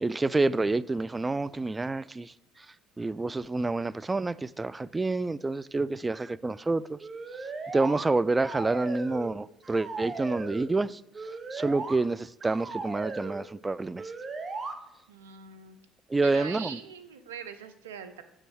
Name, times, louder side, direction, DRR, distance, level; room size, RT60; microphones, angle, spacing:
voice 1, 0.0-2.3 3.0-7.0 7.7-11.0 11.5-14.0 16.1-16.8, right 3 dB, 20° right, 0.3 m, -28 dB
sound 1, 7.0-8.1 8.4-9.4 9.6-10.7 11.1-12.0 12.4-13.4 14.0-14.7, right 3 dB, 35° right, 1.2 m, -37 dB
voice 2, 15.1-15.8 16.2-18.2, right 7 dB, 90° right, 0.7 m, -42 dB
7.1 x 5.5 x 6.3 m
hypercardioid pair, 60°, 0 cm